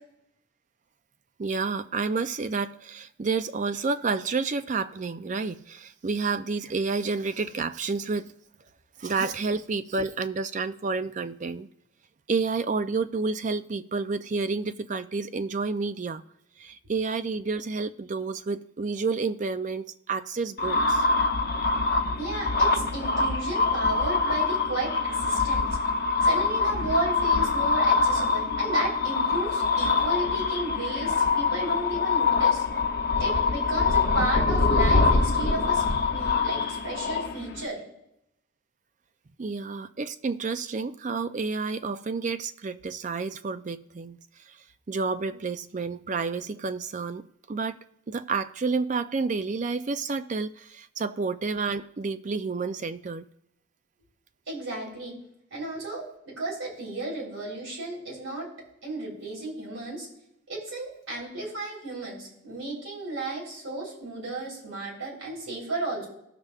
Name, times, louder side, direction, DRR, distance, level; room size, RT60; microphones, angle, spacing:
voice 1, 1.4-8.3 9.0-11.7 12.3-16.2 16.6-21.1 39.4-44.2 44.5-44.6 44.9-53.3, right 4 dB, 35° right, 0.4 m, -30 dB
sound 1, 20.6-37.6, left 4 dB, 50° left, 0.7 m, -24 dB
voice 2, 22.2-25.8 26.2-32.6 33.2-35.8 36.1-37.8 54.5-55.2 55.5-58.5 58.8-60.1 60.5-66.1, right 2 dB, 80° right, 3.9 m, -34 dB
18.0 x 6.5 x 2.4 m
head